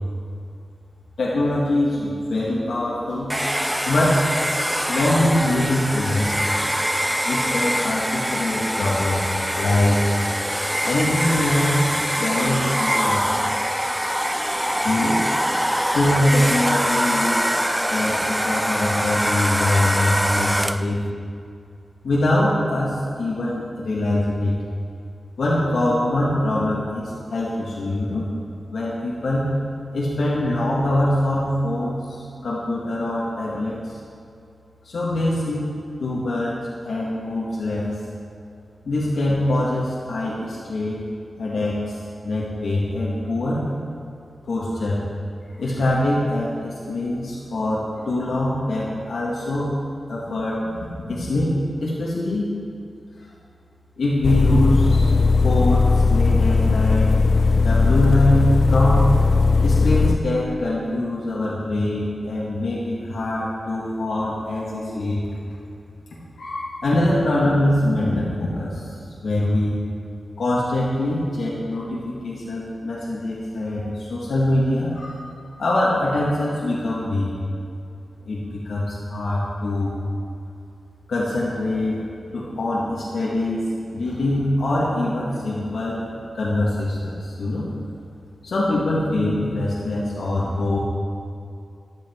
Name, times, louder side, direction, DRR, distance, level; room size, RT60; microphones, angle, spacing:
voice 1, 1.2-3.4 3.9-4.3 4.9-6.4 7.2-9.2 9.5-10.0 10.8-11.8 12.1-13.5 14.8-15.2 15.9-21.0 22.0-24.6 25.4-28.2 28.7-29.5 29.9-34.0 34.8-35.7 36.0-36.6 36.8-37.9 38.8-41.1 41.4-41.9 42.2-43.6 44.4-45.0 45.6-49.7 50.1-50.7 51.1-51.5 51.8-52.5 54.0-57.1 57.6-59.1 59.6-65.2 66.4-69.7 70.4-75.3 75.6-77.3 78.3-80.0 81.1-82.0 82.3-83.7 83.9-86.0 86.3-87.7 88.4-90.8, left 1 dB, 85° left, -6 dB, 2.1 m, -23 dB
Domestic sounds home sounds, 3.3-21.0, equal, 5° right, 0.3 m, -24 dB
sound 1, 54.2-60.2, left 4 dB, 65° left, 0.6 m, -17 dB
13.5 x 10.5 x 4.7 m, 2.5 s
wide cardioid pair, 100°, 0 cm